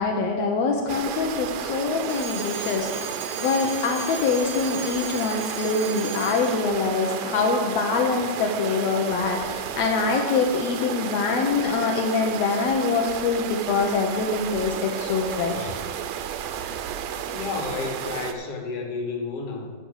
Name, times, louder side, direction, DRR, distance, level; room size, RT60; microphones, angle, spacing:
voice 1, 0.0-15.7, left 4 dB, 75° left, 1 dB, 1.5 m, -24 dB
sound 1, 0.9-18.3, right 9 dB, 90° right, 1.6 m, -32 dB
Alarm, 2.0-6.7, right 4 dB, 55° right, 1.0 m, -37 dB
voice 2, 17.3-19.7, left 4 dB, 55° left, 1 dB, 2.0 m, -31 dB
12.0 x 5.3 x 6.3 m, 1.5 s
omnidirectional pair, 3.8 m